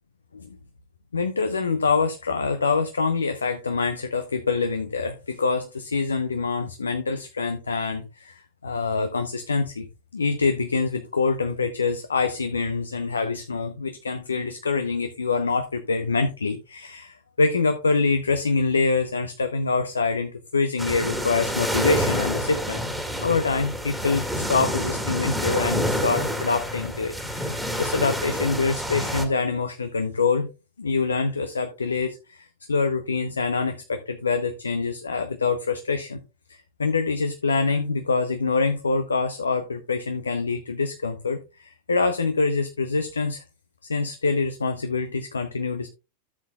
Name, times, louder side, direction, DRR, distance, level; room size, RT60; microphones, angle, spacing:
voice 1, 1.1-9.9 10.1-22.8 23.2-30.5 30.8-36.2 36.5-43.4 43.9-45.9, left 4 dB, 75° left, 8 dB, 0.8 m, -25 dB
sound 1, 20.8-29.3, equal, 5° right, 1.9 m, -28 dB
13.0 x 7.6 x 2.3 m, 0.27 s
figure-of-eight pair, 90°, 0 cm